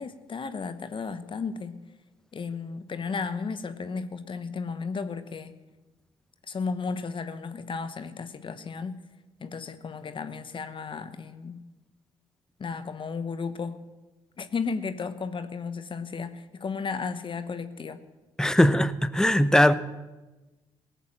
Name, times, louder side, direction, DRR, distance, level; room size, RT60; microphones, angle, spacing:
voice 1, 0.0-1.8 2.3-5.6 6.5-9.0 9.4-11.6 12.6-13.8 14.4-18.0, left 5 dB, 40° left, 1.0 m, -34 dB
voice 2, 18.4-19.7, left 1 dB, 5° left, 0.8 m, -20 dB
18.0 x 7.3 x 7.3 m
hypercardioid pair, 50°, 13 cm